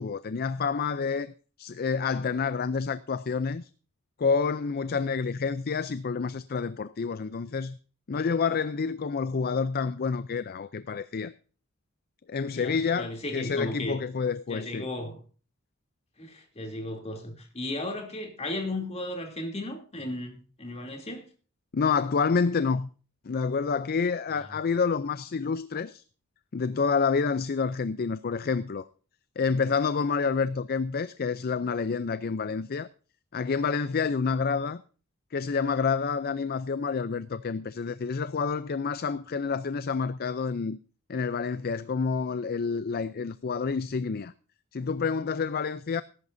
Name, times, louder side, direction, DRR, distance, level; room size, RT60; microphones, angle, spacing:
voice 1, 0.0-3.7 4.2-7.8 8.1-11.3 12.3-14.9 21.7-22.9 23.2-26.0 26.5-28.9 29.4-32.9 33.3-34.8 35.3-40.8 41.1-44.3 44.7-46.0, left 5 dB, 45° left, 0.5 m, -28 dB
voice 2, 12.5-14.0 14.5-15.2 16.2-21.3 24.3-24.6, left 1 dB, 30° left, 2.9 m, -35 dB
19.0 x 11.0 x 2.6 m
head